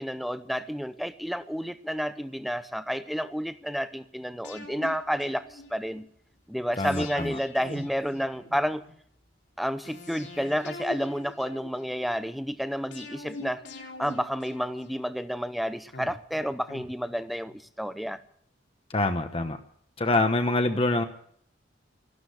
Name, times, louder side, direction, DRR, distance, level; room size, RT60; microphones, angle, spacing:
voice 1, 0.0-6.1 6.5-8.8 9.6-13.6 14.0-18.2 20.5-20.6, equal, ahead, 12 dB, 0.7 m, -30 dB
sound 1, 4.4-6.0 6.8-8.9 9.8-12.1 12.9-15.3 15.9-17.6 17.9-18.0, left 2 dB, 80° left, 3.4 m, -44 dB
voice 2, 6.8-7.4 18.9-19.6 20.0-21.0, left 2 dB, 30° left, 7 dB, 1.1 m, -25 dB
14.0 x 12.0 x 8.0 m, 0.63 s
head